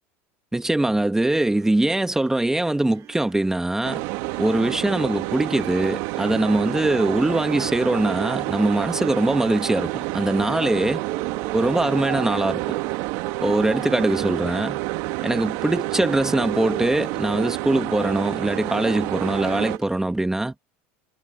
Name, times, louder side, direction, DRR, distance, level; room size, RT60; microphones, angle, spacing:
voice 1, 0.5-4.0 4.4-11.0 11.5-12.6 13.4-14.8 15.2-20.5, right 1 dB, 5° right, 1.6 m, -22 dB
sound 1, 1.2-20.0, right 13 dB, 50° right, 2.7 m, -41 dB
sound 2, 3.8-19.8, right 21 dB, 70° right, 1.8 m, -29 dB
supercardioid pair, 110°, 7 cm